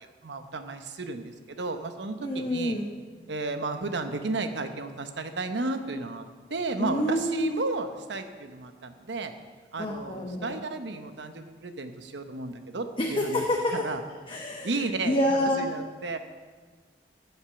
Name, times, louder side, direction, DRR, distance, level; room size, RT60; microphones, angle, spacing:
voice 1, 0.0-2.7 3.3-9.3 9.7-13.4 13.7-14.0 14.6-16.2, right 3 dB, 85° right, 8 dB, 1.0 m, -33 dB
voice 2, 2.2-2.9 6.8-7.6 9.8-10.6 13.0-13.8 14.3-14.7 15.0-15.7, left 1 dB, 30° left, 0 dB, 1.0 m, -27 dB
14.0 x 8.1 x 5.8 m, 1.5 s
head